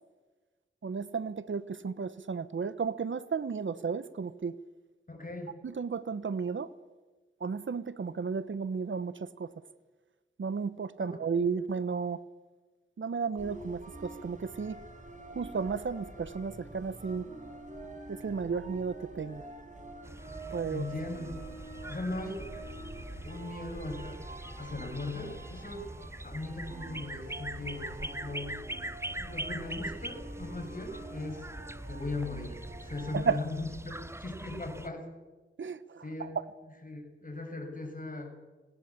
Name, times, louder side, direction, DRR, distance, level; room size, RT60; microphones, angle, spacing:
voice 1, 0.8-4.6 5.6-6.7 7.4-9.5 10.4-12.2 13.0-14.8 15.3-17.3 18.1-19.4 20.5-20.8 33.1-33.4 35.6-36.3, right 5 dB, 65° right, 1.0 m, -33 dB
voice 2, 5.1-5.6 11.0-11.2 20.7-22.5 23.2-24.2 24.6-25.9 26.2-28.6 29.2-31.5 31.9-35.1 36.0-36.4 36.6-38.4, left 2 dB, 40° left, 6.2 m, -39 dB
sound 1, 13.4-33.2, right 1 dB, 35° right, 4.6 m, -46 dB
sound 2, 20.0-34.9, right 1 dB, 10° right, 0.8 m, -43 dB
19.0 x 17.5 x 8.4 m
wide cardioid pair, 60°, 21 cm